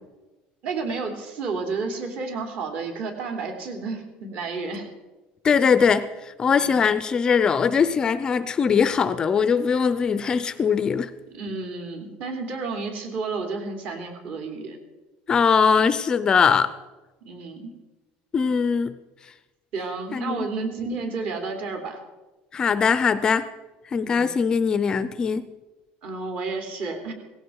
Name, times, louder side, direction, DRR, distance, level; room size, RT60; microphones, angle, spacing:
voice 1, 0.6-4.9 6.6-6.8 11.3-14.8 17.2-17.7 19.7-22.0 24.0-24.3 26.0-27.1, right 4 dB, 50° right, 3.3 m, -31 dB
voice 2, 5.4-11.1 15.3-16.7 18.3-18.9 20.1-20.4 22.5-23.5 23.9-25.5, left 6 dB, 20° left, 0.5 m, -21 dB
18.0 x 16.0 x 4.7 m
cardioid pair, 165°, 4 cm